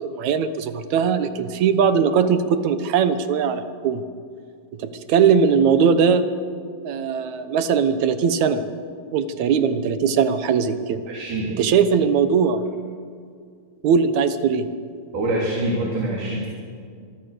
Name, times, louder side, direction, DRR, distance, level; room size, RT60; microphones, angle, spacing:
voice 1, 0.0-4.0 4.8-6.2 6.8-8.6 9.1-11.0 11.6-12.6 13.8-14.7, right 6 dB, 70° right, 11 dB, 2.3 m, -20 dB
voice 2, 11.1-11.5 15.1-16.5, right 1 dB, 90° right, -2 dB, 4.6 m, -25 dB
25.5 x 23.0 x 6.7 m, 2.2 s
omnidirectional pair, 3.5 m